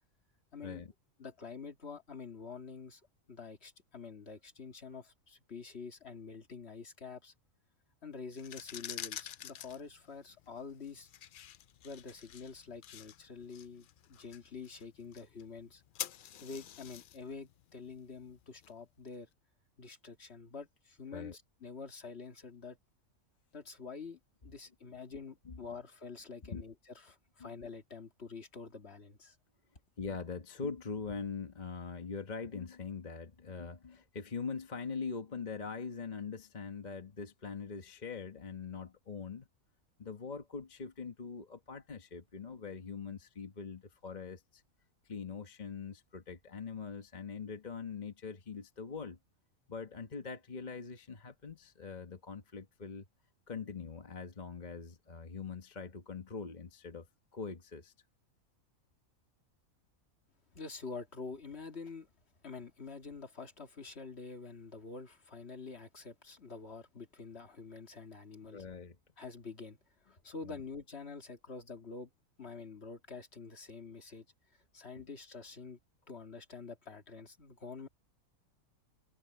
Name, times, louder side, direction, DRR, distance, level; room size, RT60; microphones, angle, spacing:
voice 1, 0.5-0.8 1.2-3.0 3.3-7.3 8.0-11.1 11.8-15.8 16.4-19.3 19.8-22.8 23.5-26.7 27.0-29.4 60.5-62.1 62.4-68.7 69.2-72.1 72.4-74.3 74.5-75.8 76.1-77.9, left 4 dB, 50° left, 2.1 m, -47 dB
sound 1, 8.3-19.1, left 10 dB, 75° left, 0.4 m, -48 dB
voice 2, 30.0-39.5 40.0-44.6 45.0-49.2 49.7-53.1 53.5-57.1 57.3-57.9 68.4-69.0 70.4-70.6 74.9-75.1, left 5 dB, 35° left, 1.2 m, -42 dB
omnidirectional pair, 1.5 m